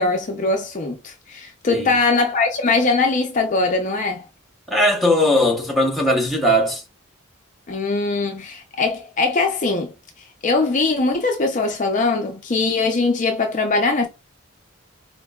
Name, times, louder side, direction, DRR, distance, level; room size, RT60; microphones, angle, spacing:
voice 1, 0.0-4.2 7.7-9.9 10.4-14.1, left 3 dB, 40° left, 0.5 m, -21 dB
voice 2, 4.7-6.8, left 1 dB, ahead, 0.8 m, -19 dB
4.3 x 2.5 x 2.3 m
head